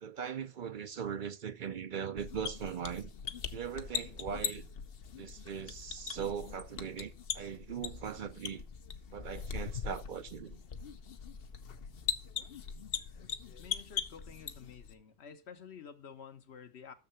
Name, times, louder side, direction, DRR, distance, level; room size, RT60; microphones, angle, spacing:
voice 1, 0.0-3.1 3.5-4.7 5.2-8.6 9.1-10.6, right 7 dB, 55° right, 0.7 m, -40 dB
sound 1, 2.2-14.9, left 7 dB, 65° left, 0.9 m, -41 dB
voice 2, 13.6-16.9, left 7 dB, 80° left, 1.2 m, -50 dB
6.6 x 6.5 x 6.7 m
omnidirectional pair, 1.1 m